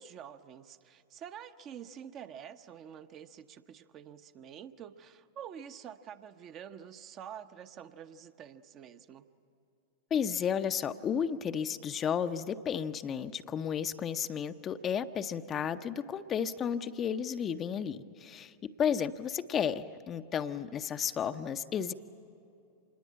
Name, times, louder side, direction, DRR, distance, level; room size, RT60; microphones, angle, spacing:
voice 1, 0.0-9.2, right 8 dB, 35° right, 9 dB, 0.9 m, -47 dB
voice 2, 10.1-21.9, left 8 dB, 25° left, 10 dB, 0.7 m, -33 dB
26.5 x 20.5 x 8.6 m, 2.6 s
figure-of-eight pair, 90°, 0 cm